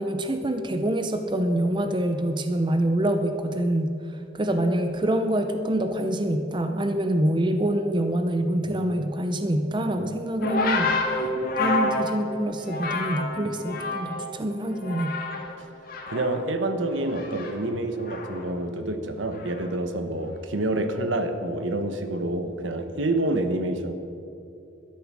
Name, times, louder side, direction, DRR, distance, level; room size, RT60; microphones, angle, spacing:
voice 1, 0.0-3.9 4.3-11.0 11.6-15.1, right 1 dB, 25° right, 7 dB, 0.6 m, -25 dB
sound 1, 10.4-14.3 14.6-15.5 15.8-18.5 19.4-19.7, left 2 dB, 50° left, 1.8 m, -29 dB
voice 2, 16.1-23.9, right 2 dB, 80° right, 8 dB, 1.1 m, -28 dB
12.5 x 10.5 x 6.2 m, 2.8 s
head